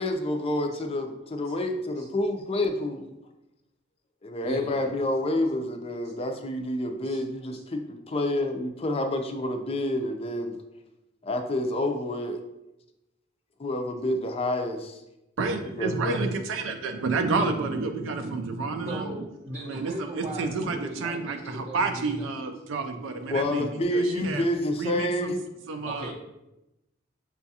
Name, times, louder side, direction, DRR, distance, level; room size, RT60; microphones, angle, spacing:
voice 1, 0.0-3.1 4.2-10.6 11.2-12.4 13.6-15.0 15.8-16.3 23.3-25.4, left 1 dB, 30° left, 5 dB, 0.4 m, -28 dB
voice 2, 4.4-4.9 7.0-7.2 7.5-7.6 18.9-22.3 25.9-26.1, right 1 dB, 35° right, -4 dB, 0.5 m, -38 dB
voice 3, 15.4-19.1 19.7-24.5 24.8-25.3 25.7-26.1, right 3 dB, 80° right, 6 dB, 0.4 m, -30 dB
6.8 x 2.4 x 2.7 m, 0.93 s
head